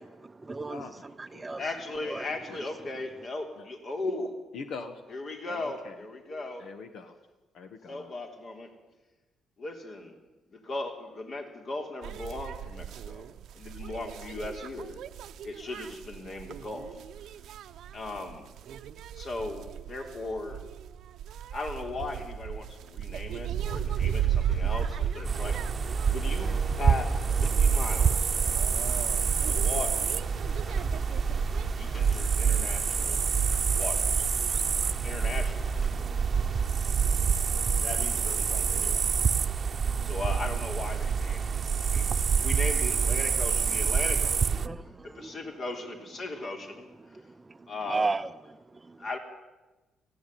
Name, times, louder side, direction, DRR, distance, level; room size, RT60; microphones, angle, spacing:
voice 1, 0.0-1.7 2.0-3.3 41.9-42.7 43.7-43.9 44.5-45.6 46.8-49.1, right 3 dB, 20° right, 12 dB, 0.7 m, -37 dB
voice 2, 0.7-1.6 2.5-2.6 3.5-3.7 4.5-5.2 5.5-6.0 6.6-7.2 7.5-8.1, left 4 dB, 70° left, 8 dB, 1.5 m, -43 dB
voice 3, 1.6-4.3 5.1-6.7 7.9-8.7 9.6-10.2 10.5-13.2 13.5-15.0 15.4-17.0 17.9-18.4 19.1-20.6 21.5-28.3 29.5-30.0 31.8-33.2 33.7-34.3 35.0-35.8 37.4-37.5 37.8-39.1 40.0-44.7 45.0-47.2 47.7-48.1 49.0-49.2, left 2 dB, 50° left, 4 dB, 3.9 m, -37 dB
sound 1, 12.0-31.6, right 9 dB, 75° right, 0.8 m, -36 dB
sound 2, 23.7-36.0, left 1 dB, 15° left, 3.8 m, -41 dB
sound 3, 25.2-44.7, right 6 dB, 45° right, 0.9 m, -27 dB
19.0 x 15.0 x 9.3 m, 1.2 s
cardioid pair, 90°, 0 cm